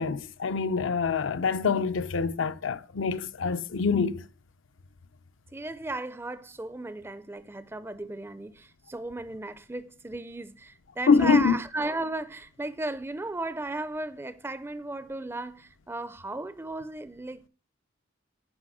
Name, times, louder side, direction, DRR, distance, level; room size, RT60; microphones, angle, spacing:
voice 1, 0.0-4.2 11.1-11.6, left 5 dB, 70° left, 0.6 m, -25 dB
voice 2, 5.5-17.5, right 2 dB, 10° right, 0.4 m, -35 dB
9.8 x 5.2 x 6.0 m
head